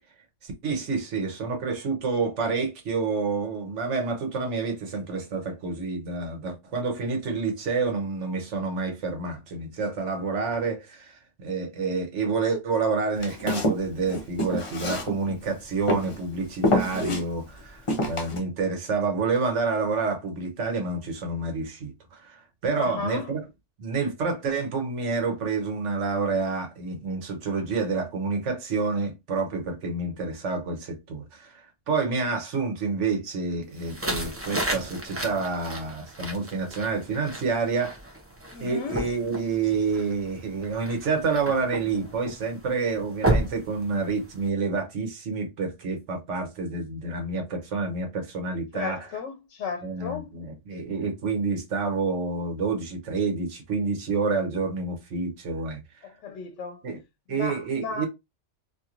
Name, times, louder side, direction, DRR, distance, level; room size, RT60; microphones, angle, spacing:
voice 1, 0.4-23.4 23.8-38.0 38.6-49.0 49.8-55.8 56.8-57.0 57.3-58.1, right 4 dB, 80° right, 1.2 m, -28 dB
Walk footsteps, 13.2-15.5 15.9-16.2 16.6-17.2 17.9-18.4, left 1 dB, 35° left, 0.6 m, -26 dB
voice 2, 22.7-23.3 38.5-39.0 48.7-50.3 56.0-56.8 57.3-58.1, left 4 dB, 80° left, 0.9 m, -34 dB
sound 1, 33.8-44.5, right 1 dB, 15° right, 0.4 m, -33 dB
2.9 x 2.8 x 2.4 m
omnidirectional pair, 1.2 m